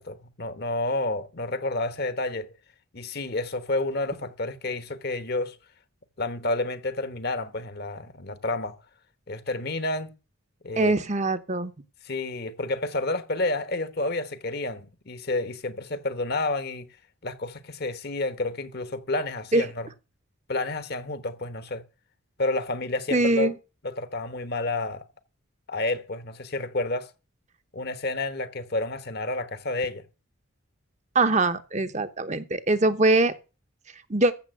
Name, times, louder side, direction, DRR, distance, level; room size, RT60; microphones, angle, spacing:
voice 1, 0.0-2.5 2.9-5.6 6.2-8.7 9.3-10.1 10.6-10.9 12.0-16.9 17.2-19.9 20.5-21.8 22.4-23.5 23.8-25.0 25.7-27.1 27.7-30.0, left 2 dB, 45° left, 1.2 m, -30 dB
voice 2, 10.8-11.7 19.5-19.6 23.1-23.5 31.1-33.3 34.1-34.3, right 2 dB, 30° right, 0.9 m, -22 dB
15.0 x 6.9 x 6.4 m
head